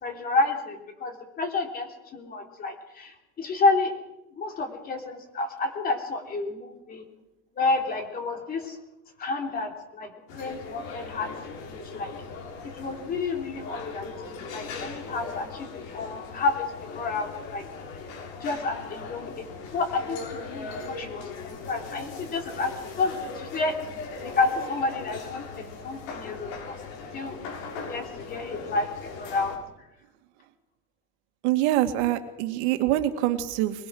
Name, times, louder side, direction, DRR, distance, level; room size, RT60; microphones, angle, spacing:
voice 1, 0.0-3.9 4.4-7.0 7.6-8.8 9.2-11.3 11.7-12.1 12.6-17.6 18.4-23.8 24.2-26.8 27.1-27.4 27.9-28.9 29.2-29.5, left 3 dB, 25° left, 4 dB, 3.3 m, -30 dB
sound 1, 10.3-29.6, left 4 dB, 75° left, 6.5 m, -39 dB
voice 2, 31.4-33.9, right 14 dB, 75° right, 7 dB, 2.3 m, -25 dB
23.0 x 21.5 x 6.3 m, 0.91 s
cardioid pair, 175°, 34 cm